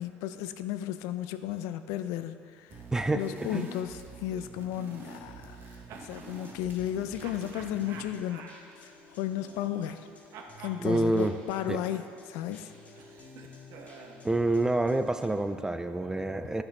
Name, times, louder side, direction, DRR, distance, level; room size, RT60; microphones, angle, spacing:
voice 1, 0.0-2.8 3.1-5.6 6.0-8.4 8.8-10.1 10.6-12.7, left 11 dB, 80° left, 11 dB, 0.3 m, -34 dB
sound 1, 2.7-8.1, right 3 dB, 40° right, 1.3 m, -46 dB
voice 2, 2.9-3.7 10.8-11.3 11.7-11.8 14.2-16.6, right 2 dB, 10° right, 9 dB, 0.4 m, -27 dB
sound 2, 5.4-6.3 7.2-10.1 10.3-14.3, right 5 dB, 65° right, 0.7 m, -50 dB
sound 3, 6.1-15.3, left 2 dB, 25° left, 2.0 m, -53 dB
9.8 x 6.0 x 3.2 m, 2.3 s
supercardioid pair, 85°, 5 cm